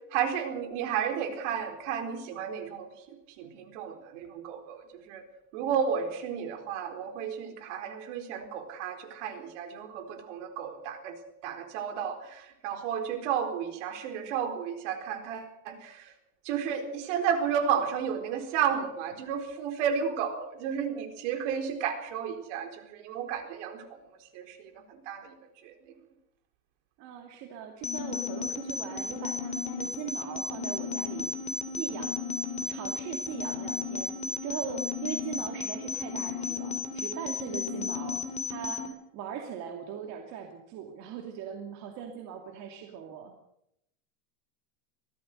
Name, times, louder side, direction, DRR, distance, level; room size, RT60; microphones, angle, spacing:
voice 1, 0.1-5.2 5.5-11.2 11.4-16.1 16.4-23.8 24.2-25.3 25.6-25.8, right 8 dB, 55° right, 6 dB, 4.3 m, -32 dB
voice 2, 27.0-32.2 32.7-34.1 34.4-43.3, right 8 dB, 40° right, 3 dB, 2.6 m, -40 dB
sound 1, 27.8-38.9, left 4 dB, 15° left, 2.8 m, -34 dB
23.5 x 16.5 x 6.7 m, 0.79 s
supercardioid pair, 155°, 42 cm